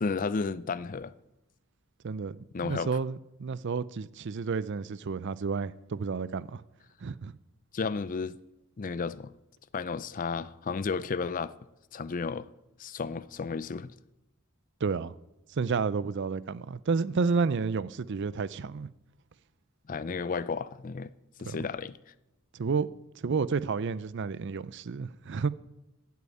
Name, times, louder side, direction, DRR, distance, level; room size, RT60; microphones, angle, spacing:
voice 1, 0.0-1.1 2.5-2.9 7.7-8.4 8.8-9.3 9.7-11.5 11.9-12.5 12.8-13.9 19.9-21.1 21.4-22.0, left 4 dB, 35° left, 0.4 m, -32 dB
voice 2, 2.0-2.4 2.6-6.6 7.0-7.4 14.8-15.2 15.5-18.9 21.4-21.6 22.5-22.9 23.2-25.5, right 5 dB, 50° right, 0.4 m, -30 dB
11.5 x 8.4 x 8.5 m
head